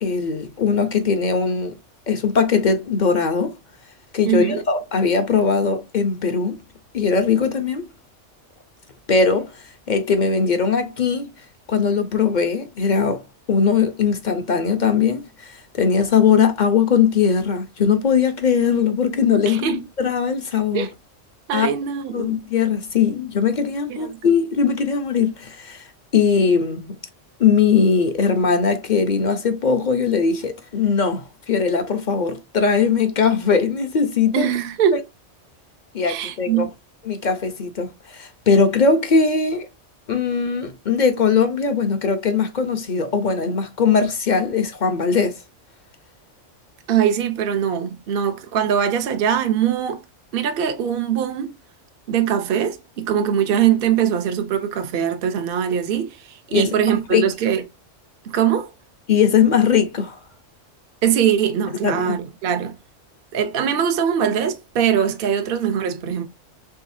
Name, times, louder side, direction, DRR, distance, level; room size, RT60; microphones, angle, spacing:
voice 1, 0.0-1.8 2.1-3.5 4.1-6.6 6.9-7.9 9.1-9.5 9.9-11.3 11.7-13.2 13.5-20.9 21.5-21.7 22.1-25.8 26.1-26.9 27.4-34.5 34.9-35.0 35.9-36.7 37.1-39.7 40.1-45.4 56.5-56.7 57.1-57.2 59.1-60.2 61.8-62.2, left 6 dB, 45° left, 0.7 m, -20 dB
voice 2, 4.2-4.6 19.5-19.8 20.7-20.9 21.5-22.3 23.9-24.3 34.3-35.0 36.0-36.7 46.9-50.0 50.3-51.5 52.1-57.6 58.2-58.7 61.0-62.8 63.3-66.3, right 9 dB, 55° right, 0.8 m, -22 dB
4.8 x 3.5 x 2.6 m
omnidirectional pair, 1.3 m